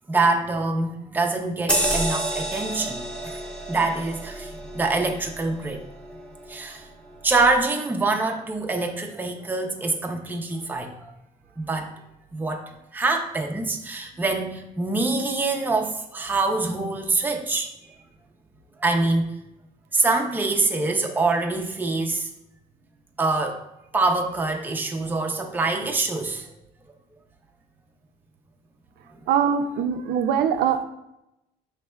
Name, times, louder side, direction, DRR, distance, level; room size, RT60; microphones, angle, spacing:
voice 1, 0.1-3.4 3.7-5.8 6.5-6.9 7.2-11.1 11.6-11.9 12.3-17.7 18.8-19.3 19.9-22.3 23.2-23.6 23.9-26.5, right 3 dB, 10° right, 2 dB, 0.5 m, -25 dB
sound 1, 1.7-6.6 7.1-7.3, right 1 dB, 5° left, 0.9 m, -29 dB
voice 2, 29.3-30.8, right 8 dB, 70° right, 7 dB, 0.4 m, -22 dB
5.1 x 3.3 x 2.2 m, 0.89 s
cardioid pair, 110°, 17 cm